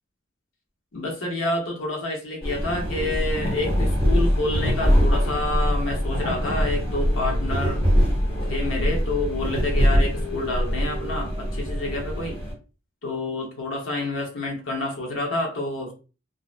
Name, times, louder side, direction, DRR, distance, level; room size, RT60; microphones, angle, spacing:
voice 1, 0.9-7.8 8.5-12.4 13.0-15.9, left 2 dB, 85° left, 0 dB, 0.9 m, -28 dB
sound 1, 2.4-12.5, equal, 30° left, 1.1 m, -23 dB
2.6 x 2.0 x 2.4 m, 0.34 s
head